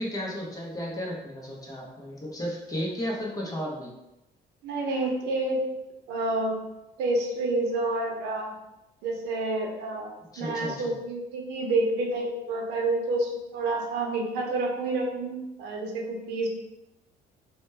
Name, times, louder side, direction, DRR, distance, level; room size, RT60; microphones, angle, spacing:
voice 1, 0.0-3.9 10.3-10.9, equal, 20° left, -3 dB, 0.8 m, -33 dB
voice 2, 4.6-5.6 6.1-6.6 7.0-8.6 9.0-10.1 10.4-16.5, right 2 dB, 85° right, 1 dB, 0.6 m, -28 dB
2.9 x 2.2 x 3.2 m, 0.92 s
cardioid pair, 110°, 17 cm